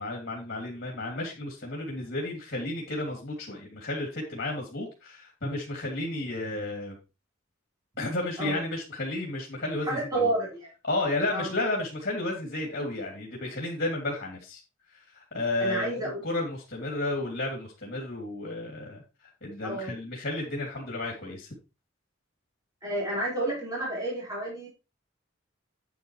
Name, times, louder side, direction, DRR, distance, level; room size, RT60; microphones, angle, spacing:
voice 1, 0.0-7.0 8.0-10.3 10.8-14.6 15.1-19.0 19.4-21.5, left 2 dB, 50° left, -1 dB, 3.0 m, -32 dB
voice 2, 9.8-10.7 11.3-11.5 15.6-16.2 19.6-19.9 22.8-24.7, right 1 dB, 20° right, -5 dB, 4.9 m, -30 dB
9.2 x 9.1 x 3.2 m, 0.28 s
head